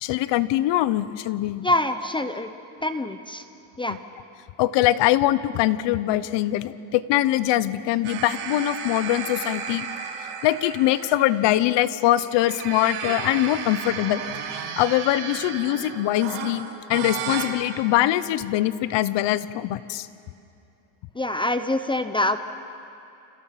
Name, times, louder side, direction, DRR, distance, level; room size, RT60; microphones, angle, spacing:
voice 1, 0.0-1.7 3.9-4.0 4.6-9.9 10.4-14.2 14.8-20.1, left 14 dB, 55° left, 15 dB, 1.0 m, -23 dB
voice 2, 1.6-2.5 2.8-3.4 3.8-4.0 21.2-22.4, left 1 dB, 10° left, 10 dB, 0.6 m, -25 dB
sound 1, 8.0-11.6 12.2-17.5, right 7 dB, 80° right, 3.5 m, -33 dB
29.0 x 27.0 x 5.8 m, 2.7 s
cardioid pair, 140°, 50 cm